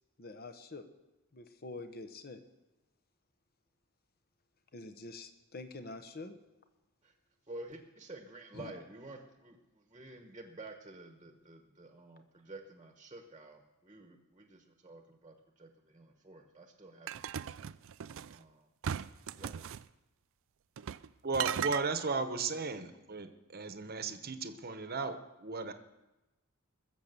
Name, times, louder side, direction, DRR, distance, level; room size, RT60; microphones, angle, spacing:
voice 1, 0.2-0.9 1.3-2.4 4.7-6.4 8.5-8.7, left 2 dB, 45° left, 8 dB, 1.0 m, -46 dB
voice 2, 7.5-17.5 18.2-18.7 19.3-19.7, right 2 dB, 25° right, 5 dB, 1.1 m, -51 dB
sound 1, 17.1-18.4 18.8-19.8 20.8-21.1 21.3-21.8, right 9 dB, 60° right, 0.4 m, -37 dB
voice 3, 21.2-25.7, right 4 dB, 45° right, 9 dB, 1.0 m, -35 dB
21.0 x 7.3 x 6.8 m, 1.0 s
head